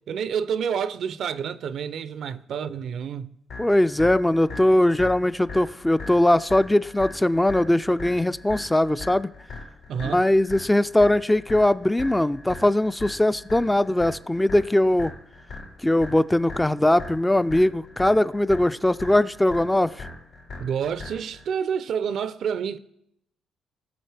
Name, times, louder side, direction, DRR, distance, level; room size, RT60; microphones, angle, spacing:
voice 1, 0.1-3.3 9.9-10.3 20.6-22.8, right 7 dB, 65° right, 0.5 m, -28 dB
sound 1, 3.5-21.5, left 3 dB, 85° left, 4.0 m, -40 dB
voice 2, 3.6-9.3 10.1-15.1 15.8-20.0, left 1 dB, 10° left, 0.4 m, -20 dB
19.0 x 6.4 x 3.4 m
cardioid pair, 90°, 0 cm